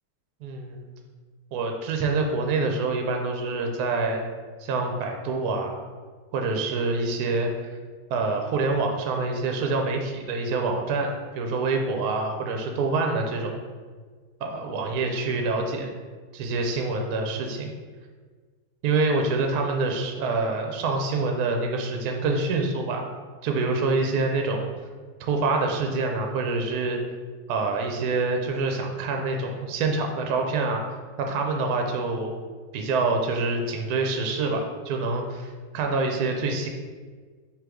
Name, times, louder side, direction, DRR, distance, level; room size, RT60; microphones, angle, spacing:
voice 1, 0.4-0.9 1.5-4.3 4.6-5.9 6.3-7.5 8.1-13.6 14.4-15.9 16.3-17.7 18.8-23.0 23.4-24.7 25.2-27.0 27.5-30.8 31.2-32.3 32.7-35.5 35.7-36.7, right 3 dB, 75° right, 3 dB, 0.9 m, -26 dB
3.7 x 2.8 x 4.8 m, 1.5 s
omnidirectional pair, 2.2 m